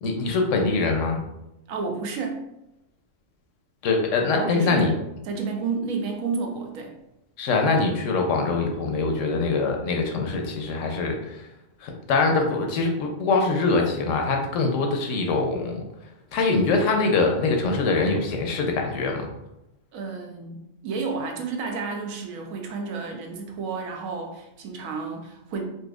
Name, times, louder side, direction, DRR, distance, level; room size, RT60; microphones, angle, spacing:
voice 1, 0.0-1.2 3.8-4.9 7.4-11.5 11.8-15.8 16.3-19.3, left 3 dB, 75° left, 2 dB, 0.9 m, -23 dB
voice 2, 1.7-2.5 4.3-5.0 5.2-6.9 19.9-25.6, right 4 dB, 80° right, 2 dB, 1.0 m, -31 dB
4.2 x 2.6 x 2.3 m, 0.89 s
omnidirectional pair, 1.4 m